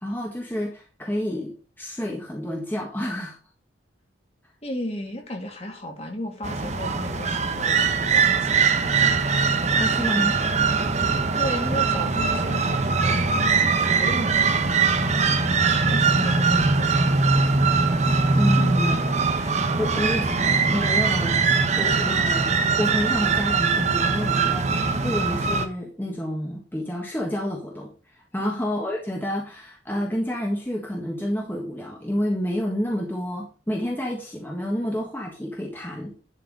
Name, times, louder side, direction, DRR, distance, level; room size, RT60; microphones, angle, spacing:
voice 1, 0.0-3.4 9.8-10.4 18.3-19.1 19.5-21.4 21.7-22.5 22.8-27.9 28.3-36.2, equal, 10° left, -1 dB, 1.5 m, -29 dB
voice 2, 4.6-7.8 8.1-9.2 11.4-13.3 13.8-17.5 19.3-19.6 19.9-20.0 28.4-28.5, left 1 dB, 35° left, 2 dB, 2.3 m, -35 dB
sound 1, 6.4-25.7, right 4 dB, 35° right, 0.9 m, -21 dB
11.5 x 4.7 x 4.8 m, 0.35 s
head